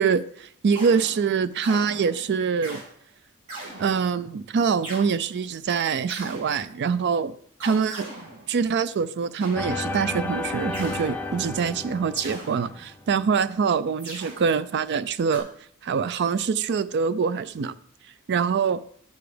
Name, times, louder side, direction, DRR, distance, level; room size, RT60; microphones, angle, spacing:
voice 1, 0.0-2.8 3.8-7.3 7.6-8.1 8.5-15.5 15.8-17.7 18.3-18.8, right 6 dB, 50° right, 0.4 m, -24 dB
sound 1, 0.7-2.9 3.5-4.3 4.8-5.1 6.1-6.9 7.6-8.8 9.4-10.2 10.7-11.6 12.1-13.1 14.0-14.8 15.3-15.4, right 2 dB, 70° right, 4.0 m, -40 dB
sound 2, 9.5-13.1, left 2 dB, 10° left, 0.5 m, -32 dB
9.3 x 6.9 x 5.0 m
head